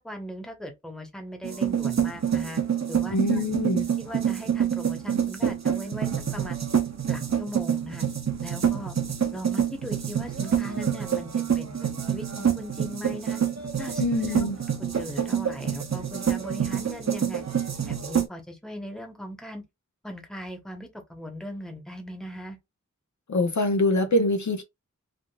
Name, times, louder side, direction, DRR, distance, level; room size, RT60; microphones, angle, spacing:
voice 1, 0.0-2.6 2.9-3.4 4.0-6.6 7.1-8.1 8.4-9.0 9.3-13.4 13.8-14.0 14.3-14.5 14.8-17.4 17.9-19.6 20.0-22.6, equal, ahead, 1.0 m, -39 dB
sound 1, 1.4-18.3, right 8 dB, 55° right, 0.7 m, -27 dB
voice 2, 3.1-3.9 14.0-14.6 23.3-24.6, left 2 dB, 65° left, 0.7 m, -24 dB
3.6 x 2.5 x 2.4 m
wide cardioid pair, 45°, 32 cm